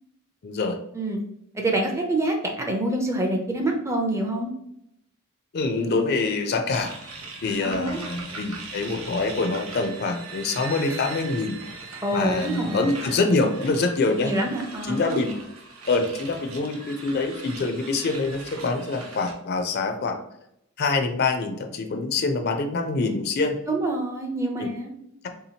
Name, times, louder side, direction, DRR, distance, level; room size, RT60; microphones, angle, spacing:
voice 1, 0.4-0.8 5.5-6.9 7.4-11.6 12.1-14.4 14.8-15.3 15.9-20.2 20.8-23.6 24.6-24.7, left 3 dB, 50° left, 6 dB, 0.4 m, -25 dB
voice 2, 1.5-4.5 7.6-8.0 12.0-12.9 14.2-15.2 23.7-24.9, right 1 dB, 15° right, 1 dB, 0.4 m, -26 dB
sound 1, 6.7-19.3, right 3 dB, 80° right, 0.7 m, -40 dB
3.6 x 2.8 x 2.8 m, 0.78 s
head